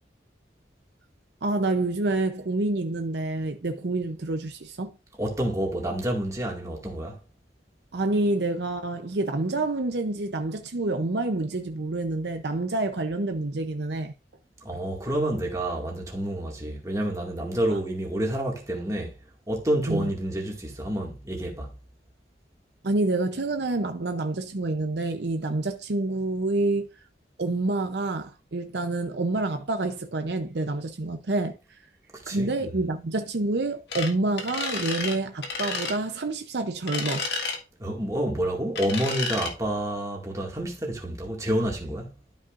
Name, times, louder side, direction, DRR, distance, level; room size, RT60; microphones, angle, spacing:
voice 1, 1.4-5.0 7.9-14.1 17.7-17.8 19.9-20.1 22.8-26.9 27.4-31.6 32.3-37.3, right 2 dB, 65° right, 0.7 m, -27 dB
voice 2, 5.2-7.2 14.6-19.1 19.5-21.7 32.1-32.7 37.8-42.1, right 1 dB, 20° right, 2.1 m, -29 dB
sound 1, 33.9-34.1 34.4-35.2 35.4-36.0 36.9-37.6 38.8-39.5, left 4 dB, 65° left, 1.7 m, -30 dB
12.5 x 5.5 x 2.5 m
head